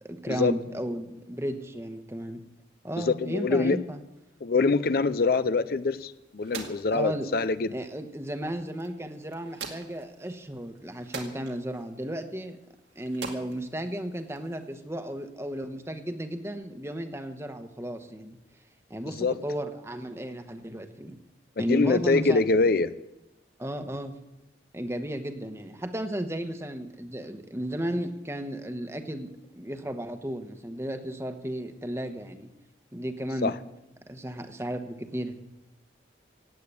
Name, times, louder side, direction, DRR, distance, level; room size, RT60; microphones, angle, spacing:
voice 1, 0.0-2.4 2.8-4.0 6.9-7.3 7.7-12.6 13.0-18.4 18.9-21.2 21.6-22.5 23.6-24.2 24.7-32.5 32.9-33.5 34.1-35.3, right 1 dB, 15° right, 7 dB, 1.1 m, -34 dB
voice 2, 3.0-3.8 4.4-7.7 19.2-19.3 21.6-22.9 33.4-33.5, left 3 dB, 55° left, 14 dB, 0.5 m, -24 dB
sound 1, 5.7-14.7, right 5 dB, 75° right, 2.3 m, -46 dB
17.0 x 8.6 x 8.4 m, 0.95 s
head